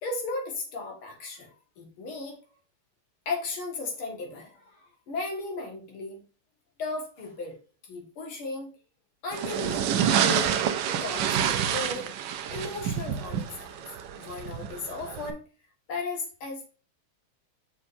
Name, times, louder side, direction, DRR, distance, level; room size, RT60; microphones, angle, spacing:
voice 1, 0.0-2.4 3.3-6.2 6.8-7.6 7.8-8.7 9.2-12.1 12.4-13.8 14.2-15.4 15.9-16.7, left 3 dB, 70° left, 1 dB, 2.5 m, -36 dB
sound 1, 9.3-15.3, right 9 dB, 70° right, 1.1 m, -28 dB
6.3 x 6.1 x 2.6 m, 0.36 s
omnidirectional pair, 2.4 m